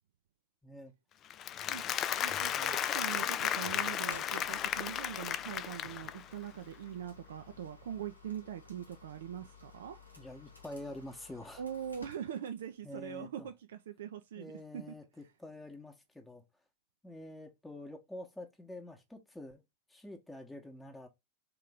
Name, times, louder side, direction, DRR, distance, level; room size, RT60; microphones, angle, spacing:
voice 1, 0.6-0.9 2.6-2.8 10.2-11.6 12.8-13.5 14.4-16.4 17.0-19.6 19.9-21.1, left 1 dB, 5° left, 0.9 m, -47 dB
Applause, 1.3-6.3, left 10 dB, 30° left, 0.3 m, -34 dB
voice 2, 2.2-10.0 11.6-14.8, right 9 dB, 60° right, 0.4 m, -42 dB
sound 1, 4.1-12.8, left 4 dB, 80° left, 1.1 m, -56 dB
3.7 x 3.0 x 3.5 m
figure-of-eight pair, 90°, 0 cm